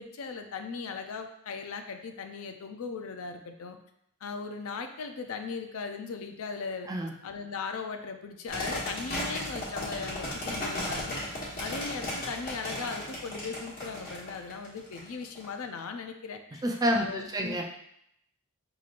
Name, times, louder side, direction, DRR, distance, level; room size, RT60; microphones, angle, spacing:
voice 1, 0.0-3.8 4.2-6.9 7.2-11.2 11.6-16.6 16.9-17.6, left 5 dB, 70° left, 6 dB, 0.4 m, -38 dB
sound 1, 8.5-15.5, left 1 dB, 45° left, 1.2 m, -35 dB
voice 2, 16.6-17.7, equal, 15° right, 2 dB, 0.4 m, -28 dB
5.4 x 3.0 x 2.5 m, 0.75 s
head